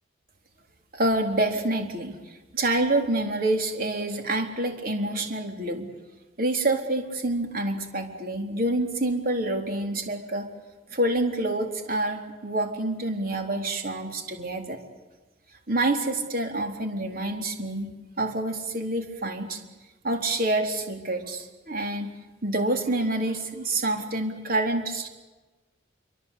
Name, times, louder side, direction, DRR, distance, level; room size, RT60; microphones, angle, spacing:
voice 1, 0.9-5.9 6.4-10.5 10.9-14.8 15.7-19.6 20.0-22.2 22.4-25.1, right 2 dB, 50° right, 4 dB, 3.9 m, -27 dB
26.5 x 24.5 x 8.4 m, 1.2 s
head